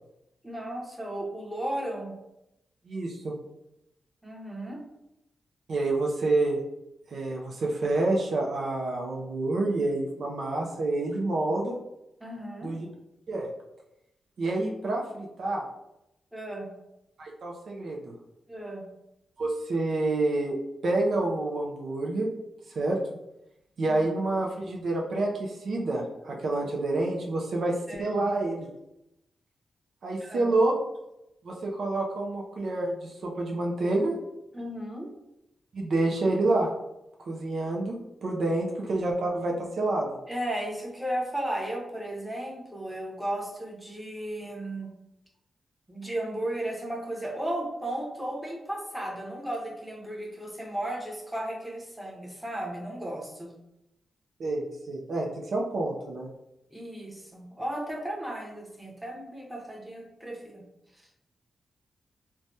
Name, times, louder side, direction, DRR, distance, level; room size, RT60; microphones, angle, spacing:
voice 1, 0.4-2.1 4.2-4.8 12.2-12.7 16.3-16.7 18.5-18.8 27.9-28.2 30.2-30.5 34.5-35.1 40.3-44.9 45.9-53.5 56.7-60.6 60.9-61.0, right 1 dB, 5° right, -2 dB, 0.9 m, -35 dB
voice 2, 2.9-3.3 5.7-6.6 7.1-11.8 12.6-12.9 13.3-13.5 14.4-15.6 17.2-18.1 19.4-20.6 20.8-22.3 22.8-23.0 23.8-27.7 28.0-28.7 30.0-30.7 31.4-34.1 35.7-36.7 37.2-38.0 38.2-40.2 54.4-56.3, right 2 dB, 70° right, -1 dB, 0.5 m, -28 dB
3.2 x 2.2 x 2.6 m, 0.88 s
cardioid pair, 60°, 0 cm